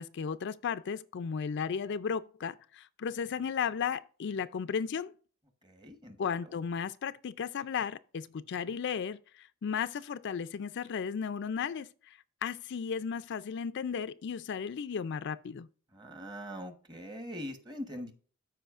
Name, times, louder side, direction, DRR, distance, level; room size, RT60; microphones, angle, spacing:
voice 1, 0.0-5.1 6.2-15.7, left 6 dB, 55° left, 0.4 m, -35 dB
voice 2, 5.6-6.2 6.4-6.5 15.9-18.1, equal, 20° right, 1.2 m, -42 dB
13.5 x 4.9 x 2.4 m
head